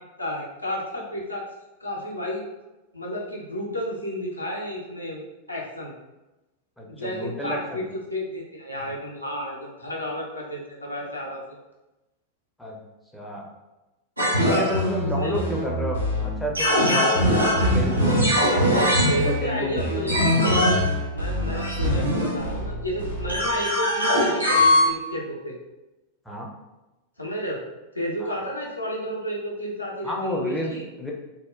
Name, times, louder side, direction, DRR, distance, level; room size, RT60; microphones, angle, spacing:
voice 1, 0.2-1.4 1.8-2.5 2.9-5.2 5.5-5.9 6.9-7.8 8.1-11.4 14.8-15.4 18.5-20.2 21.1-25.5 27.2-27.6 27.9-30.8, equal, 85° left, -3 dB, 0.5 m, -31 dB
voice 2, 6.8-7.9 12.6-12.8 13.1-13.5 14.4-18.5 18.7-18.8 19.1-20.2 26.3-26.5 28.2-28.4 30.0-30.7 31.0-31.1, left 1 dB, 5° left, -2 dB, 0.4 m, -31 dB
sound 1, 14.2-24.8, left 1 dB, 85° right, 0.5 m, -22 dB
2.8 x 2.0 x 2.3 m, 1.0 s
figure-of-eight pair, 90°, 0 cm